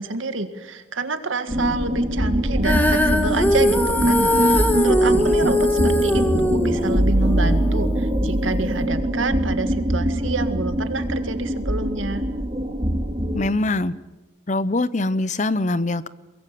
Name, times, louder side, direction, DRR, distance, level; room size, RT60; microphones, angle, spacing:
voice 1, 0.0-12.2, right 3 dB, 90° right, 9 dB, 2.0 m, -28 dB
sound 1, 1.5-13.5, right 1 dB, 30° right, 2.8 m, -23 dB
Female singing, 2.6-8.9, left 1 dB, 10° left, 1.7 m, -21 dB
voice 2, 13.3-13.9 14.5-16.1, left 2 dB, 40° left, 17 dB, 0.7 m, -23 dB
23.0 x 22.5 x 7.6 m, 1.2 s
head